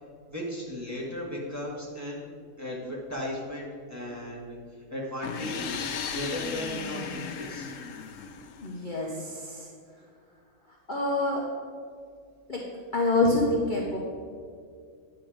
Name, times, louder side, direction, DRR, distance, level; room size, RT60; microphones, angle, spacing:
voice 1, 0.3-2.2 2.6-4.6 4.9-5.9 6.1-7.8, equal, 10° right, -5 dB, 1.7 m, -36 dB
sound 1, 5.2-9.0, left 6 dB, 70° left, 1.0 m, -36 dB
voice 2, 8.6-9.6 10.9-11.4 12.5-12.6 12.9-14.0, left 2 dB, 40° left, -3 dB, 1.0 m, -26 dB
10.5 x 6.0 x 5.0 m, 2.2 s
omnidirectional pair, 1.5 m